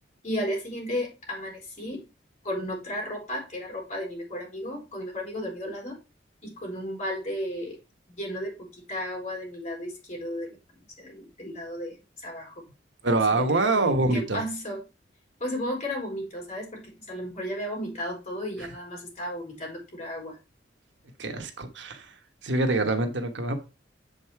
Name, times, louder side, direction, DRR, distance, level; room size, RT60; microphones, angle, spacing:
voice 1, 0.2-2.0 2.4-6.0 6.4-7.8 8.2-10.6 11.0-12.6 13.3-13.4 13.7-14.8 15.4-20.4, equal, 40° left, 0 dB, 4.0 m, -34 dB
voice 2, 13.0-14.4 21.2-22.1 22.4-23.6, right 2 dB, 80° right, 6 dB, 1.2 m, -25 dB
7.3 x 5.3 x 4.7 m, 0.29 s
head